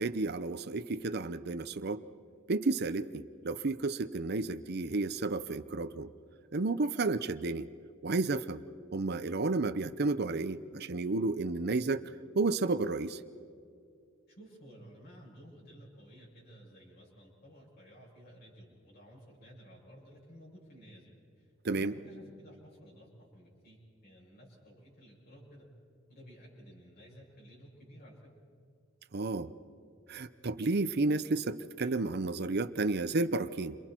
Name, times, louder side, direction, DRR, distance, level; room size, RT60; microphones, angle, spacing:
voice 1, 0.0-2.0 2.5-6.1 6.5-7.7 8.0-8.6 8.9-12.0 12.3-13.2 21.6-21.9 29.1-29.5 30.1-33.8, right 3 dB, 55° right, 10 dB, 0.7 m, -32 dB
voice 2, 14.3-21.1 21.4-25.7 26.1-28.2, equal, 55° left, -6 dB, 7.3 m, -54 dB
30.0 x 27.0 x 4.5 m, 2.4 s
head